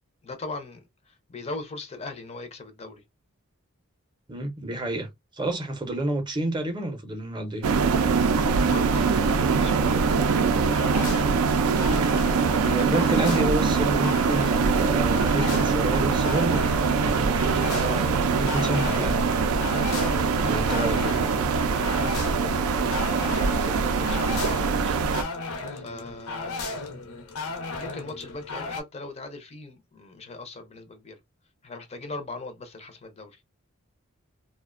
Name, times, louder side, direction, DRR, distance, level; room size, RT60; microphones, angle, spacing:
voice 1, 0.2-3.0 8.7-11.3 12.5-13.4 19.9-21.4 21.7-25.0 25.7-26.8 27.6-31.2 31.6-33.4, left 3 dB, 30° left, 0.4 m, -40 dB
voice 2, 4.3-5.1 5.3-7.7 12.6-16.6 16.9-19.4 20.4-21.2, right 2 dB, 20° right, 0.5 m, -29 dB
sound 1, 7.6-25.2, right 5 dB, 80° right, 0.4 m, -23 dB
sound 2, 10.7-28.8, left 3 dB, 75° left, 0.6 m, -36 dB
2.4 x 2.1 x 2.4 m
head